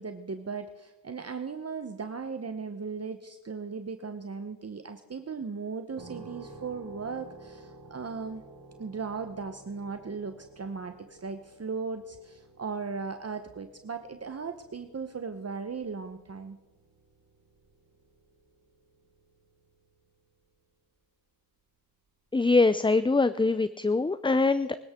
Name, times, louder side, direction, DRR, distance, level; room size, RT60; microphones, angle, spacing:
voice 1, 0.0-8.4 8.8-16.6, right 5 dB, 45° right, 8 dB, 0.9 m, -37 dB
sound 1, 6.0-20.6, right 2 dB, 70° right, 4.8 m, -53 dB
voice 2, 22.3-24.8, left 3 dB, 15° left, 14 dB, 0.5 m, -23 dB
22.0 x 13.0 x 3.7 m, 1.0 s
cardioid pair, 45°, 35 cm